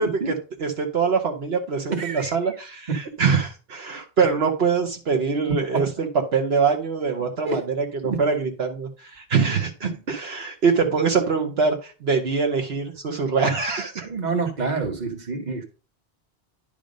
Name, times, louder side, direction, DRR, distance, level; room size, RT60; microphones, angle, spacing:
voice 1, 0.0-14.1, right 5 dB, 70° right, 3 dB, 1.2 m, -24 dB
voice 2, 1.9-2.3 2.9-3.0 5.7-5.8 7.4-7.6 8.0-8.2 9.8-10.0 14.0-15.6, right 4 dB, 40° right, 5 dB, 1.4 m, -27 dB
10.5 x 3.5 x 5.1 m, 0.34 s
omnidirectional pair, 1.1 m